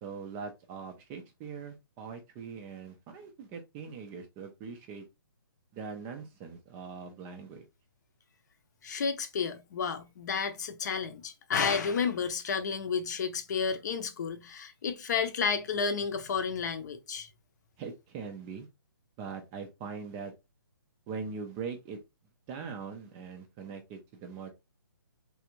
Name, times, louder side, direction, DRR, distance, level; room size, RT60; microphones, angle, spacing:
voice 1, 0.0-5.0 5.7-7.7 17.8-18.7 19.2-20.3 21.1-22.0 22.5-24.5, right 5 dB, 15° right, 0.4 m, -41 dB
voice 2, 8.8-17.3, left 6 dB, 50° left, 0.7 m, -31 dB
3.4 x 2.4 x 2.9 m
hypercardioid pair, 150°, 12 cm